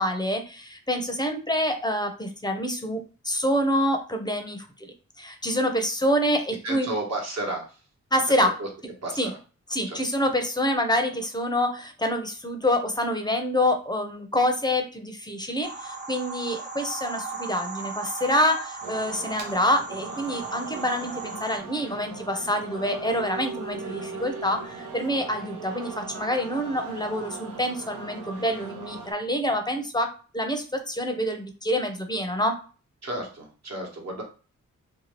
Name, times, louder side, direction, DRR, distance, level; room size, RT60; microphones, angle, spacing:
voice 1, 0.0-6.9 8.1-8.5 9.2-9.3 9.7-32.6, equal, 15° left, 5 dB, 0.6 m, -26 dB
voice 2, 6.6-7.8 8.4-8.7 9.0-9.4 9.8-10.0 33.0-34.2, right 1 dB, 55° right, 0 dB, 1.1 m, -32 dB
sound 1, 15.6-21.6, right 4 dB, 35° right, 0.7 m, -37 dB
sound 2, 18.8-29.1, right 4 dB, 80° right, 0.7 m, -39 dB
2.8 x 2.3 x 3.0 m, 0.36 s
cardioid pair, 60°, 32 cm